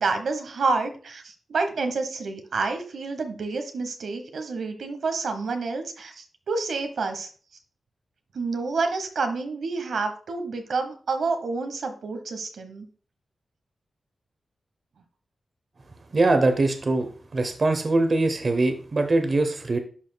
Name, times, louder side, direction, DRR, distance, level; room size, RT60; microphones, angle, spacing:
voice 1, 0.0-7.3 8.3-12.9, right 4 dB, 85° right, 6 dB, 1.0 m, -28 dB
voice 2, 16.1-19.8, right 2 dB, 40° right, 7 dB, 0.8 m, -22 dB
11.0 x 4.8 x 2.2 m, 0.40 s
wide cardioid pair, 160°, 0 cm